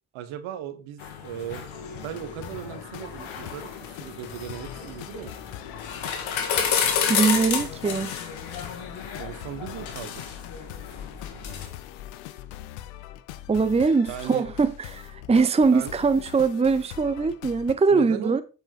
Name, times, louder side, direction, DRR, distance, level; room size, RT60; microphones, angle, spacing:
voice 1, 0.1-1.7 2.0-3.7 4.0-5.4 9.2-10.2 14.1-14.4 15.7-16.0 17.9-18.4, right 10 dB, 70° right, 1.3 m, -37 dB
sound 1, 1.0-11.7, left 7 dB, 65° left, 1.9 m, -31 dB
sound 2, 2.1-17.8, left 13 dB, 85° left, 0.7 m, -42 dB
voice 2, 7.1-8.1 13.5-18.4, right 4 dB, 15° right, 0.7 m, -22 dB
7.9 x 5.6 x 4.4 m
hypercardioid pair, 50°, 50 cm